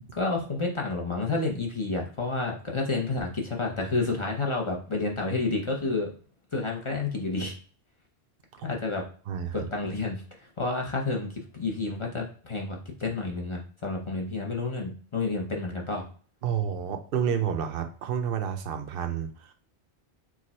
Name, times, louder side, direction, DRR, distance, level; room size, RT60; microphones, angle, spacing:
voice 1, 0.1-6.1 6.5-7.5 8.6-9.0 9.5-16.1, left 3 dB, 35° left, 0 dB, 0.6 m, -30 dB
voice 2, 9.3-9.7 16.4-19.5, right 8 dB, 60° right, 7 dB, 0.7 m, -30 dB
4.7 x 2.2 x 4.2 m, 0.42 s
omnidirectional pair, 1.1 m